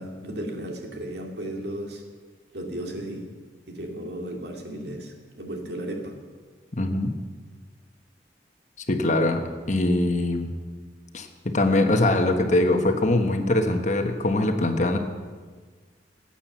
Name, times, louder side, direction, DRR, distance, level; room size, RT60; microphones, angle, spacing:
voice 1, 0.0-2.0 2.5-3.3 3.7-6.2, right 1 dB, 65° right, 2 dB, 2.4 m, -34 dB
voice 2, 6.7-7.1 8.9-10.5 11.1-15.0, left 2 dB, 40° left, 5 dB, 1.3 m, -22 dB
17.5 x 8.9 x 7.4 m, 1.5 s
head